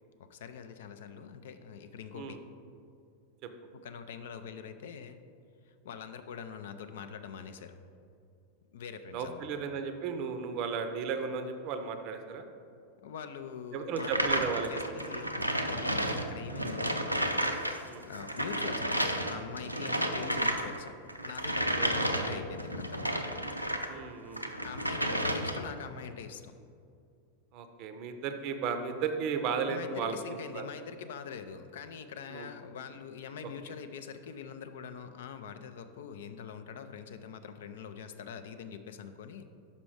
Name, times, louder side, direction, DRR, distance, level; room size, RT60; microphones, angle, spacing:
voice 1, 0.2-2.4 3.7-5.2 5.7-7.8 8.7-9.6 13.0-17.2 18.0-20.9 21.2-23.2 24.6-26.5 29.7-39.5, left 7 dB, 55° left, 9 dB, 0.4 m, -44 dB
voice 2, 9.1-12.4 13.7-14.8 17.9-18.0 21.8-21.9 23.9-24.6 25.1-25.2 27.5-30.2 30.5-30.7 32.3-32.5, right 6 dB, 40° right, 8 dB, 0.5 m, -34 dB
sound 1, 13.9-17.8 18.0-23.9 24.3-25.8, equal, 90° right, 0.4 m, -32 dB
6.0 x 5.5 x 4.7 m, 2.4 s
figure-of-eight pair, 90°, 0 cm